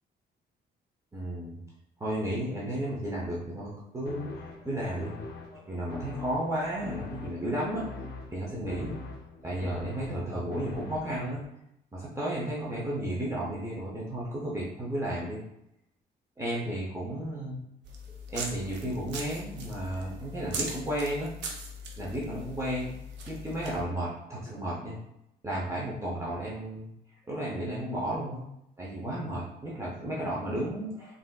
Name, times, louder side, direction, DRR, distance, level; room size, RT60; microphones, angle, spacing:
voice 1, 1.1-1.6 2.0-7.9 8.3-9.0 9.4-11.4 11.9-15.4 16.4-17.6 18.3-21.3 22.0-23.0 23.3-25.0 25.4-26.9 27.3-28.5 28.8-31.2, right 1 dB, 15° right, -5 dB, 0.6 m, -33 dB
sound 1, 4.1-11.4, left 3 dB, 65° left, 0.5 m, -43 dB
sound 2, 17.8-23.8, right 1 dB, 80° right, 0.6 m, -40 dB
3.4 x 2.6 x 2.2 m, 0.80 s
cardioid pair, 110°, 18 cm